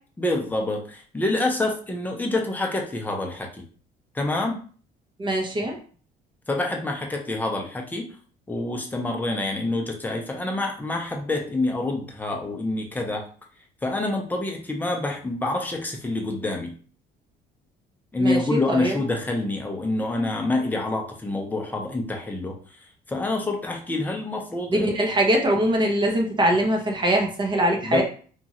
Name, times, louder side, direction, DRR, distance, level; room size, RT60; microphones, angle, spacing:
voice 1, 0.2-3.6 4.1-4.6 6.5-8.1 8.5-13.3 13.8-16.7 18.1-22.6 23.1-24.9 27.8-28.0, left 2 dB, 10° left, 1 dB, 0.6 m, -27 dB
voice 2, 5.2-5.7 18.2-19.0 24.7-28.0, right 1 dB, 25° right, 1 dB, 0.7 m, -22 dB
2.9 x 2.4 x 2.8 m, 0.42 s
cardioid pair, 110°, 17 cm